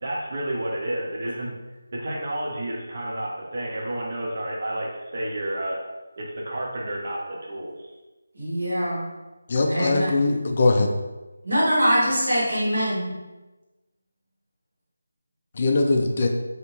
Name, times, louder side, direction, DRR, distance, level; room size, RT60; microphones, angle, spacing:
voice 1, 0.0-1.6 1.9-5.8 6.2-7.9, right 1 dB, 45° right, -3 dB, 0.6 m, -30 dB
voice 2, 8.3-9.0 9.7-10.1 11.4-13.1, equal, 65° right, -7 dB, 1.2 m, -23 dB
voice 3, 9.5-10.9 15.5-16.3, left 2 dB, 40° left, 3 dB, 0.3 m, -21 dB
2.7 x 2.1 x 3.0 m, 1.1 s
figure-of-eight pair, 170°, 0 cm